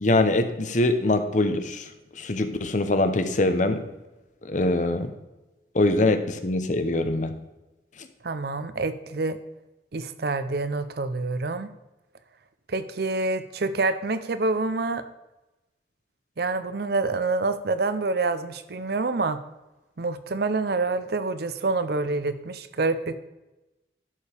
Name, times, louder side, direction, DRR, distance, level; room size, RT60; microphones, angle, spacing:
voice 1, 0.0-1.9 2.1-3.8 4.4-5.1 5.7-7.3, left 2 dB, 45° left, 9 dB, 0.8 m, -23 dB
voice 2, 8.2-9.4 9.9-11.7 12.7-15.0 16.4-19.4 20.0-23.2, right 3 dB, 60° right, 11 dB, 0.6 m, -27 dB
11.0 x 7.1 x 3.4 m, 1.0 s
head